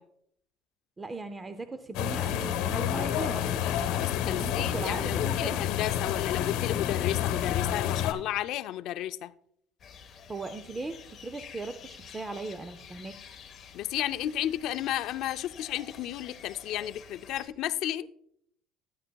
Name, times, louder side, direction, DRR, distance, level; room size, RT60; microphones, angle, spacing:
voice 1, 1.0-3.5 4.2-5.6 10.3-13.2, right 3 dB, 15° right, 0.4 m, -38 dB
sound 1, 1.9-8.1, left 10 dB, 80° left, 1.0 m, -29 dB
voice 2, 3.9-9.3 13.7-18.1, left 12 dB, 55° left, 0.4 m, -33 dB
sound 2, 9.8-17.5, left 7 dB, 35° left, 1.0 m, -49 dB
13.0 x 9.6 x 2.2 m
cardioid pair, 165°, 0 cm